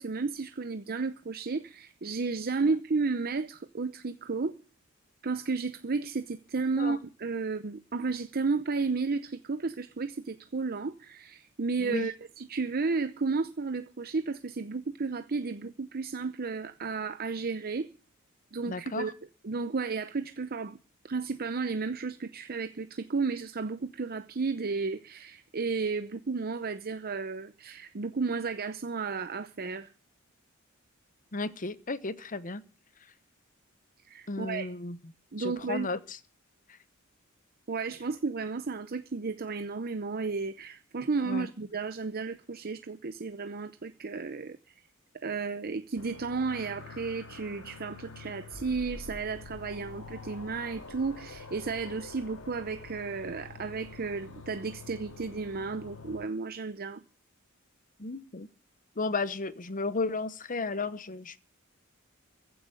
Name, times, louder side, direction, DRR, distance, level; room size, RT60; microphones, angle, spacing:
voice 1, 0.0-4.5 5.2-17.9 18.5-19.1 19.4-20.8 21.0-29.9 34.0-34.7 35.3-35.9 37.7-44.7 45.2-57.0, right 4 dB, 45° right, 0.7 m, -33 dB
voice 2, 18.7-19.1 31.3-32.6 34.3-35.0 35.4-36.0 41.3-41.5 58.0-58.5 59.0-61.4, left 3 dB, 40° left, 1.0 m, -33 dB
sound 1, 46.0-56.3, left 3 dB, 65° left, 2.6 m, -46 dB
15.0 x 7.9 x 9.1 m
head